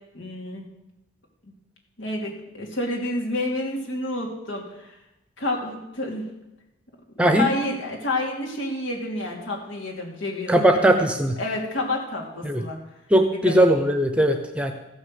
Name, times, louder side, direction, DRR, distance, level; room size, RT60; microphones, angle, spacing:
voice 1, 0.1-0.6 2.0-4.9 5.4-6.2 7.3-10.5 11.4-12.8 13.4-13.6, left 2 dB, 80° left, -1 dB, 3.1 m, -29 dB
voice 2, 7.2-7.5 10.5-11.3 12.4-12.6 13.1-14.7, right 1 dB, 5° right, 6 dB, 0.8 m, -19 dB
14.5 x 6.5 x 7.7 m, 0.92 s
head